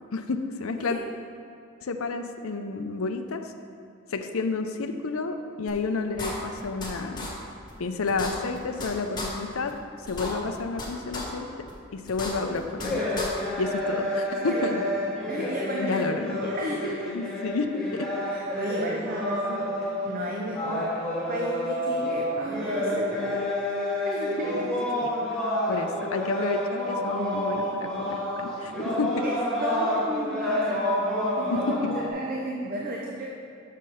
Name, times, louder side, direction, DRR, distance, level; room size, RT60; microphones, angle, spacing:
voice 1, 0.1-1.0 1.8-3.5 4.1-7.3 7.8-9.7 10.1-11.5 11.9-13.2 13.6-14.8 15.8-16.4 17.1-18.1 25.7-29.2 31.5-31.9, left 4 dB, 75° left, 6 dB, 0.6 m, -30 dB
sound 1, 5.7-5.8 6.2-6.9 7.2-7.3 7.7-7.8 8.1-8.9 9.2-9.3 9.7-9.8 10.1-10.9 11.1-11.2 11.7-11.8 12.1-12.9 13.2-13.3, left 2 dB, 20° left, 1.5 m, -34 dB
sound 2, 12.4-32.1, left 1 dB, 5° left, 1.3 m, -29 dB
voice 2, 14.4-14.9 15.3-17.2 18.3-20.9 21.3-23.5 24.1-24.8 29.2-30.9 31.4-33.3, right 1 dB, 40° right, -1 dB, 0.7 m, -33 dB
6.5 x 6.5 x 5.5 m, 2.6 s
head